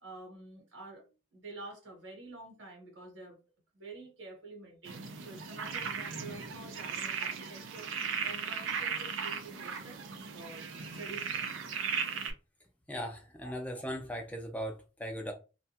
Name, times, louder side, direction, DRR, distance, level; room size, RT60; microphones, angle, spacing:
voice 1, 0.0-3.4 3.7-10.0 10.3-10.7 10.9-11.5 13.4-13.5, right 2 dB, 75° right, 1.0 m, -48 dB
sound 1, 4.9-12.3, right 6 dB, 90° right, 0.5 m, -37 dB
voice 2, 12.9-15.3, equal, 10° left, 0.5 m, -38 dB
2.3 x 2.2 x 2.7 m
head